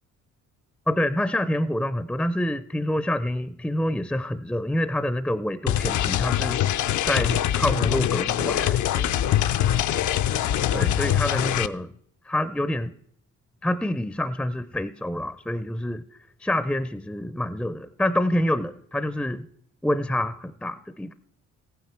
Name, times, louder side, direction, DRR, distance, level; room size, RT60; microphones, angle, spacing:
voice 1, 0.9-6.8 7.1-9.0 10.7-11.9 12.3-12.9 13.6-16.0 16.4-19.5 19.8-21.1, left 1 dB, 5° left, 14 dB, 0.4 m, -27 dB
sound 1, 5.7-11.7, left 11 dB, 75° left, 0.6 m, -23 dB
15.0 x 9.3 x 4.4 m, 0.66 s
cardioid pair, 90°, 30 cm